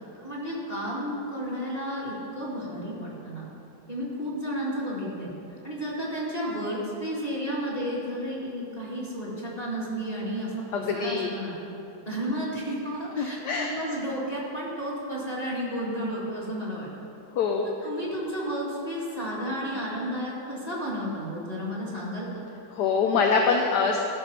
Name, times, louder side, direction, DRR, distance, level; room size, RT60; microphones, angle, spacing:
voice 1, 0.1-3.5 3.9-5.3 5.6-11.5 12.1-16.9 17.8-22.4, equal, 20° left, -6 dB, 2.0 m, -32 dB
voice 2, 10.7-11.3 13.2-13.7 17.3-17.7 22.7-24.0, left 5 dB, 70° left, 2 dB, 1.2 m, -24 dB
13.0 x 5.5 x 5.9 m, 2.8 s
omnidirectional pair, 2.2 m